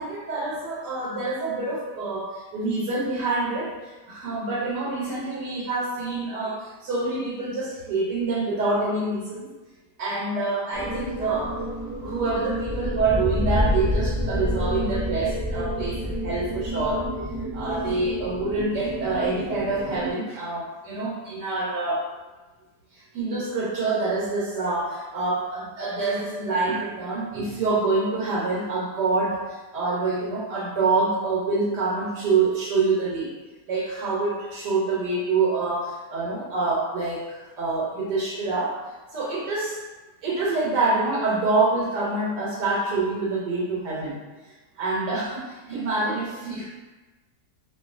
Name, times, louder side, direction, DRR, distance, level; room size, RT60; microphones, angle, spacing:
voice 1, 0.0-9.5 10.0-17.1 17.5-22.1 22.9-33.3 33.7-38.8 39.1-39.8 40.2-44.2 44.8-46.8, right 3 dB, 85° right, -6 dB, 1.3 m, -26 dB
sound 1, 10.7-20.1, equal, 30° right, 0.4 m, -28 dB
2.6 x 2.5 x 2.4 m, 1.2 s
omnidirectional pair, 1.8 m